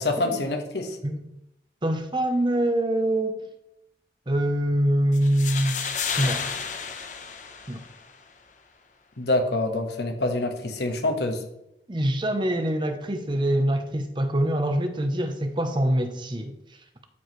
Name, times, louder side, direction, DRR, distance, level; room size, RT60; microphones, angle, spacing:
voice 1, 0.0-1.0 9.2-11.4, left 2 dB, 70° left, 4 dB, 1.3 m, -26 dB
voice 2, 1.0-1.4 1.8-3.4 4.3-5.8 6.2-6.4 7.7-7.8 11.9-16.5, right 1 dB, 25° right, 7 dB, 0.8 m, -24 dB
sound 1, 5.1-8.1, left 6 dB, 45° left, 0.8 m, -32 dB
12.5 x 4.7 x 3.1 m, 0.82 s
head